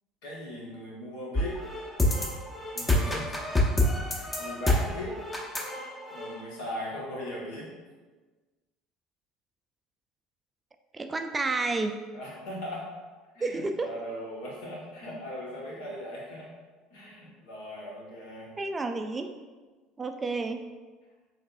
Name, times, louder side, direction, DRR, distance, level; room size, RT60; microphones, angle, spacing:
voice 1, 0.2-1.6 2.7-3.4 4.1-5.2 6.1-7.7 12.1-12.9 13.3-16.5 16.9-18.5, left 1 dB, 70° left, -4 dB, 1.2 m, -39 dB
sound 1, 1.3-6.4, left 1 dB, 10° left, 0.7 m, -27 dB
voice 2, 10.9-11.9 13.4-13.9 18.6-19.3 20.0-20.6, right 3 dB, 20° right, 6 dB, 0.3 m, -30 dB
4.6 x 3.2 x 2.4 m, 1.3 s
hypercardioid pair, 65°, 0 cm